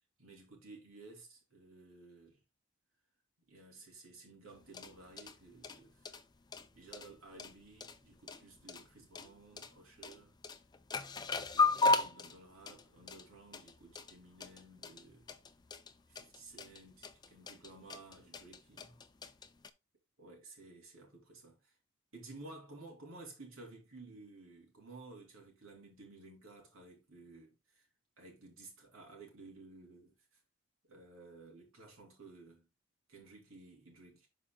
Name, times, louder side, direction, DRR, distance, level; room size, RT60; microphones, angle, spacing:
voice 1, 0.2-2.4 3.5-6.2 6.7-10.3 11.5-15.3 16.1-19.0 20.2-21.8 22.1-27.9 28.2-30.4 30.9-32.7 33.1-34.3, right 3 dB, 80° right, 3.1 m, -55 dB
sound 1, 4.5-19.7, left 3 dB, 20° left, 0.5 m, -37 dB
11.0 x 4.9 x 2.3 m
head